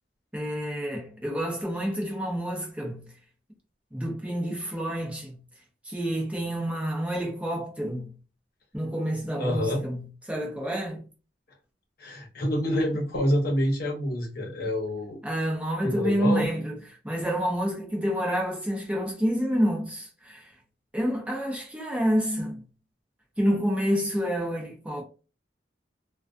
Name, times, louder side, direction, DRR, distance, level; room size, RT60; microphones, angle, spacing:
voice 1, 0.3-3.1 3.9-5.4 5.9-8.1 8.7-11.0 15.2-16.7 17.0-20.5 20.9-22.6 23.4-25.0, equal, 10° right, 0.6 m, -28 dB
voice 2, 9.4-9.8 12.0-15.2 15.8-16.5, equal, 60° left, 0.9 m, -27 dB
2.3 x 2.2 x 2.4 m
head